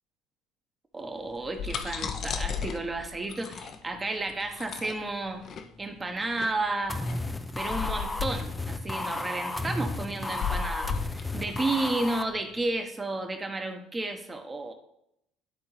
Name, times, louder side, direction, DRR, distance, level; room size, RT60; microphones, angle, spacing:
voice 1, 0.9-5.4 5.8-7.0 7.6-14.7, right 2 dB, 25° right, 5 dB, 1.2 m, -32 dB
sound 1, 1.3-12.7, left 6 dB, 50° left, 0.7 m, -36 dB
sound 2, 6.9-12.2, left 2 dB, 15° left, 0.6 m, -33 dB
11.0 x 3.8 x 3.3 m, 0.78 s
hypercardioid pair, 65°, 0 cm